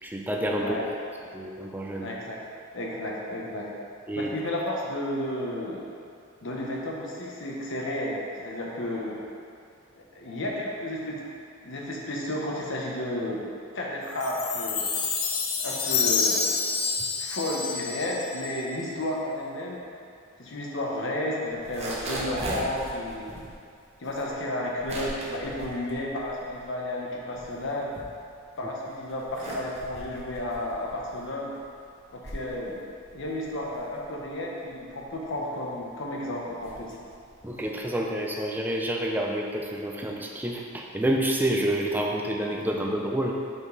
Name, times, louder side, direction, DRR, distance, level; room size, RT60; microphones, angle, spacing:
voice 1, 0.0-0.8 1.3-2.1 4.1-4.3 37.4-43.4, right 1 dB, 10° right, -1 dB, 0.5 m, -28 dB
voice 2, 2.0-2.4 2.7-3.7 4.2-5.8 6.4-9.2 9.9-11.2 11.6-13.5 13.7-14.9 15.6-16.6 17.2-19.8 20.4-23.3 24.0-27.9 28.6-31.5 32.1-32.8 33.1-36.9, left 1 dB, 60° left, -2 dB, 1.0 m, -32 dB
Chime, 14.2-18.7, left 5 dB, 85° left, 0.7 m, -28 dB
sound 1, 21.5-26.8 27.1-28.6 29.1-37.8, right 1 dB, 30° right, 0.9 m, -39 dB
5.3 x 5.2 x 4.0 m, 2.4 s
head